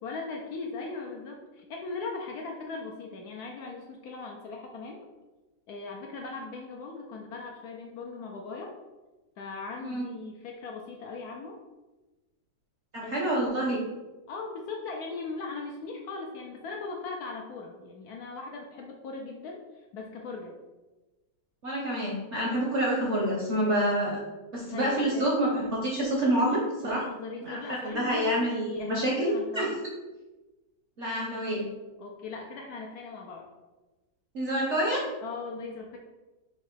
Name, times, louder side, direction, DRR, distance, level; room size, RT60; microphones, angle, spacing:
voice 1, 0.0-5.1 5.7-8.7 9.4-11.6 13.0-13.4 14.3-20.6 24.7-25.3 26.8-29.8 32.0-33.5 35.2-36.0, left 4 dB, 70° left, 0 dB, 1.0 m, -39 dB
voice 2, 12.9-13.8 21.6-24.2 24.5-27.0 27.4-29.7 31.0-31.6 34.3-35.0, right 1 dB, 55° right, -3 dB, 0.8 m, -27 dB
4.0 x 2.7 x 4.4 m, 1.1 s
omnidirectional pair, 2.0 m